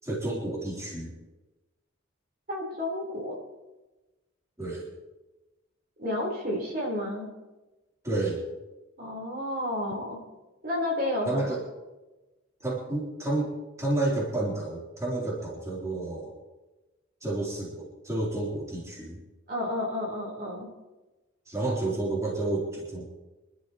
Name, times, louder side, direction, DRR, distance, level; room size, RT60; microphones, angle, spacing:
voice 1, 0.0-1.1 4.6-4.9 8.0-8.4 11.3-11.6 12.6-16.3 17.2-19.2 21.5-23.1, right 2 dB, 15° right, -5 dB, 3.7 m, -30 dB
voice 2, 2.5-3.4 6.0-7.3 9.0-10.2 10.6-11.4 19.5-20.7, left 1 dB, 50° right, -2 dB, 4.2 m, -31 dB
25.5 x 12.5 x 3.1 m, 1.1 s
head